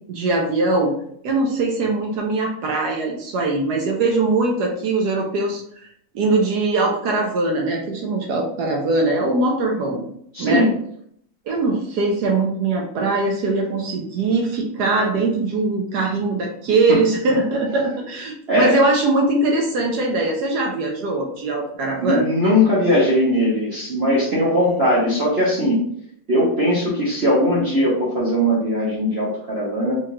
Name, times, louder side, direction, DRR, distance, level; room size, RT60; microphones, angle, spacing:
voice 1, 0.1-0.9 1.2-5.9 6.1-10.1 10.4-10.7 11.5-22.3 24.6-24.9, right 3 dB, 70° right, 0 dB, 1.1 m, -21 dB
voice 2, 10.3-10.7 18.5-18.8 22.0-25.8 26.3-30.0, equal, 50° right, -6 dB, 0.7 m, -19 dB
4.4 x 2.4 x 2.8 m, 0.68 s
omnidirectional pair, 2.0 m